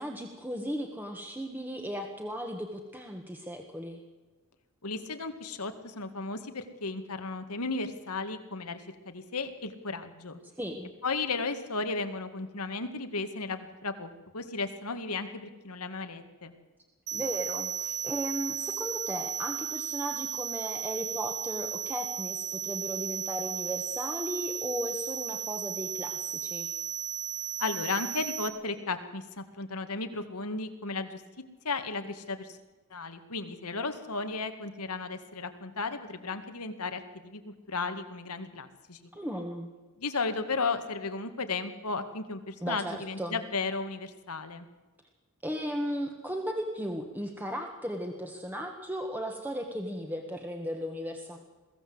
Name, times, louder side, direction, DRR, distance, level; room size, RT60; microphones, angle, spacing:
voice 1, 0.0-4.0 10.6-10.9 17.1-26.7 39.1-39.7 42.6-43.4 45.4-51.4, equal, 10° right, 3 dB, 1.5 m, -36 dB
voice 2, 4.8-10.4 11.0-16.5 27.6-31.2 31.6-32.6 32.9-39.1 40.0-44.7, left 3 dB, 90° left, 8 dB, 2.0 m, -34 dB
sound 1, 17.1-28.5, right 9 dB, 90° right, 1.9 m, -35 dB
22.0 x 16.0 x 7.9 m, 1.2 s
head